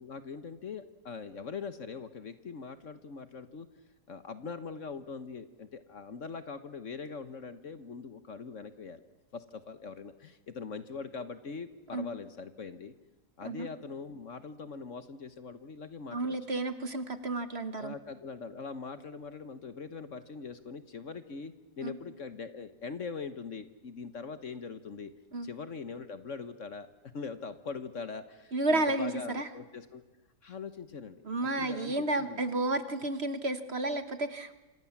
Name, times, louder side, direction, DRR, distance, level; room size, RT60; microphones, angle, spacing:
voice 1, 0.0-3.7 4.1-9.0 9.3-12.9 13.4-16.4 17.8-25.1 25.4-30.0 30.4-32.4, left 5 dB, 50° left, 11 dB, 1.4 m, -42 dB
voice 2, 16.1-17.9 21.8-22.0 25.3-25.5 28.5-29.5 31.2-34.5, right 2 dB, 40° right, 10 dB, 1.4 m, -31 dB
27.5 x 26.0 x 7.3 m, 1.1 s
omnidirectional pair, 1.7 m